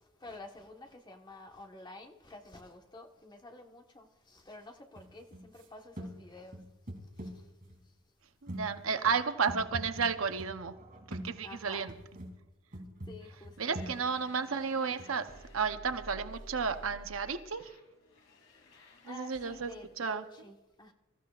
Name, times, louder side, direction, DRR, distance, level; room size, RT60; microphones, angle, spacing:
voice 1, 0.2-6.6 7.2-7.3 11.4-11.9 13.1-13.8 19.0-20.9, left 2 dB, 20° left, 1.3 m, -50 dB
sound 1, 5.0-5.6 6.0-6.2 6.5-7.8 8.5-12.3 12.7-15.4 16.7-16.8, equal, 45° right, 3.0 m, -45 dB
voice 2, 8.4-10.8 11.1-11.9 13.6-17.7 19.1-19.7 20.0-20.2, right 5 dB, 90° right, 0.8 m, -32 dB
sound 2, 13.5-19.9, equal, 70° left, 2.8 m, -53 dB
25.0 x 14.5 x 2.5 m
head